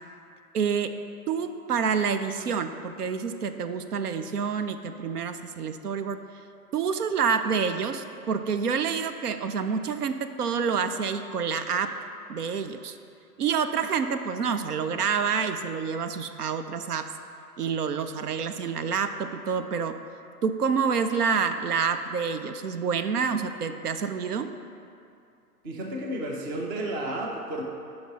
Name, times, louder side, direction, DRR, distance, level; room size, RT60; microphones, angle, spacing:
voice 1, 0.5-0.9 1.3-6.2 6.7-11.9 12.3-13.0 13.4-17.1 17.6-20.0 20.4-24.5, right 6 dB, 75° right, 9 dB, 0.7 m, -28 dB
voice 2, 25.6-27.6, right 1 dB, 15° right, 0 dB, 0.4 m, -32 dB
10.5 x 5.5 x 3.9 m, 2.5 s
figure-of-eight pair, 120°, 47 cm